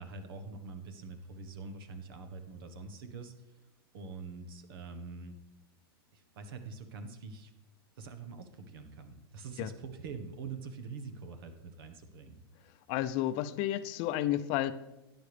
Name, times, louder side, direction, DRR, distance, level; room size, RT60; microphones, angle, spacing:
voice 1, 0.0-3.3 3.9-5.4 6.1-7.5 8.0-12.4, right 4 dB, 70° right, 8 dB, 1.3 m, -44 dB
voice 2, 12.9-14.7, left 13 dB, 45° left, 13 dB, 0.6 m, -31 dB
13.0 x 9.2 x 3.4 m, 0.96 s
hypercardioid pair, 115°, 13 cm